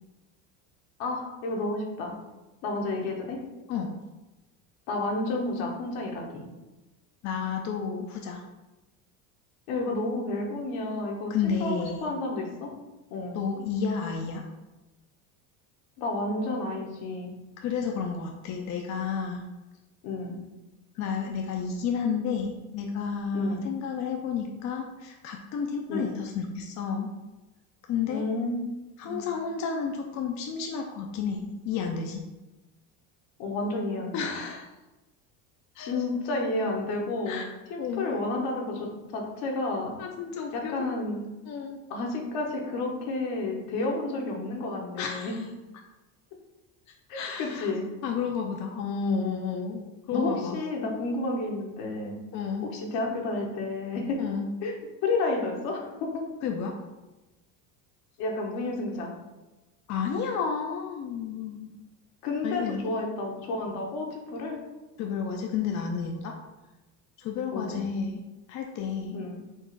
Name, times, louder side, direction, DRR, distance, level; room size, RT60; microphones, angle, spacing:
voice 1, 1.0-2.2 2.6-3.4 4.9-6.4 9.7-12.7 13.1-13.4 16.0-17.3 20.0-20.4 23.3-23.6 25.9-26.1 28.1-28.7 29.0-29.2 33.4-34.3 35.8-37.4 37.7-40.0 40.5-41.2 41.9-45.3 47.1-47.8 50.1-52.2 52.7-54.2 54.6-56.2 58.2-59.1 62.2-64.6 67.5-67.8 69.1-69.4, left 2 dB, 70° left, 1 dB, 1.2 m, -31 dB
voice 2, 7.2-8.4 11.3-12.0 13.3-14.4 17.6-19.5 21.0-27.1 27.9-28.3 29.0-32.2 34.1-34.7 35.8-36.0 37.3-37.4 37.8-38.1 40.0-40.9 41.5-41.8 45.0-45.4 47.1-47.7 48.0-50.6 52.3-52.7 54.2-54.5 56.4-56.8 59.9-61.7 62.4-62.8 65.0-66.3 67.2-68.2 68.5-69.2, left 6 dB, 45° left, 1 dB, 0.5 m, -31 dB
4.5 x 2.4 x 4.5 m, 1.1 s
supercardioid pair, 110°, 40 cm